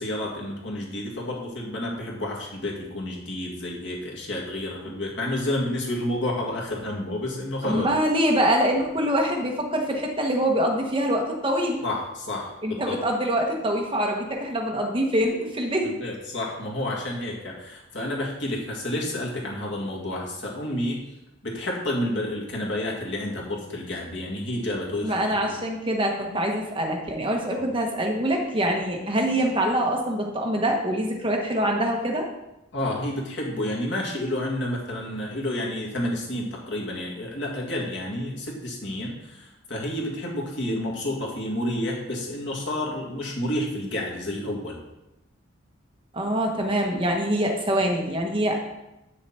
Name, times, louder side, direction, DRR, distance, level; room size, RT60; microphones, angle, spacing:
voice 1, 0.0-7.9 11.8-13.0 15.8-21.0 21.4-25.1 25.4-25.5 32.7-44.8, left 1 dB, 60° left, -3 dB, 2.1 m, -30 dB
voice 2, 7.6-11.8 12.6-15.9 25.0-32.3 46.1-48.6, right 1 dB, 25° right, 1 dB, 1.2 m, -24 dB
8.3 x 6.6 x 4.3 m, 0.91 s
head